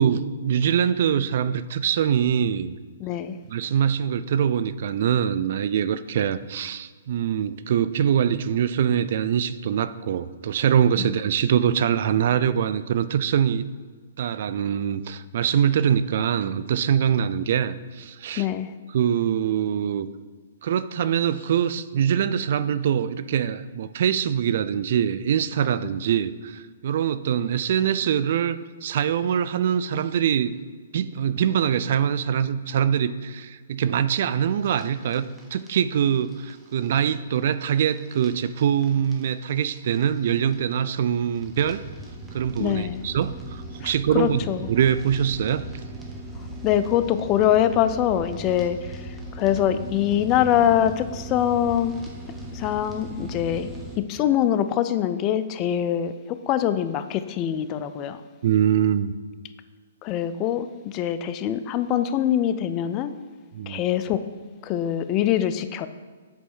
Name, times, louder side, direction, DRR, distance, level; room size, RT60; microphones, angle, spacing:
voice 1, 0.0-2.8 3.5-13.7 14.2-18.5 18.9-20.1 20.6-30.5 30.9-41.8 42.3-44.4 44.7-45.6 58.4-59.1 63.6-63.8, right 9 dB, 55° right, 14 dB, 0.3 m, -23 dB
voice 2, 3.0-3.4 11.0-11.1 18.4-18.7 42.6-43.0 43.8-44.7 46.6-52.0 52.5-58.2 60.0-63.1 63.7-64.3 64.6-65.9, left 10 dB, 30° left, 11 dB, 0.4 m, -24 dB
sound 1, 34.6-54.0, right 1 dB, 5° right, 1.0 m, -39 dB
7.9 x 3.3 x 6.2 m, 1.5 s
hypercardioid pair, 145°, 0 cm